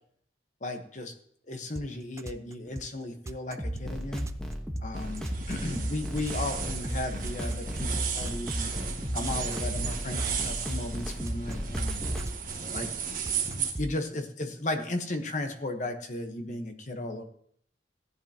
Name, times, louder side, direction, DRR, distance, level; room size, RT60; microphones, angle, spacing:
voice 1, 0.6-1.1 1.5-4.3 4.8-8.7 9.1-12.0 12.7-17.2, left 2 dB, 40° left, 6 dB, 1.1 m, -35 dB
sound 1, 1.8-13.9, right 2 dB, 15° right, 0.3 m, -39 dB
sound 2, 3.6-12.3, equal, 5° left, 1.3 m, -34 dB
sound 3, 4.9-13.7, right 6 dB, 50° right, 1.7 m, -35 dB
15.0 x 10.5 x 2.9 m, 0.64 s
head